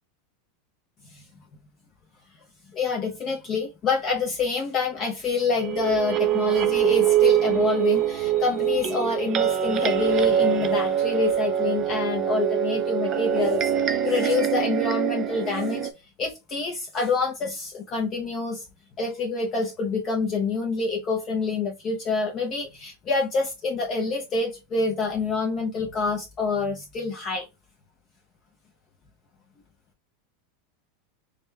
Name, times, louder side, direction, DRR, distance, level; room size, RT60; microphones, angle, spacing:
voice 1, 2.7-13.6 13.9-15.9 16.2-18.6 19.0-27.5, left 4 dB, 25° left, 0.6 m, -27 dB
sound 1, 5.6-15.9, right 10 dB, 20° right, 0.4 m, -24 dB
5.0 x 2.2 x 3.2 m
supercardioid pair, 180°, 0 cm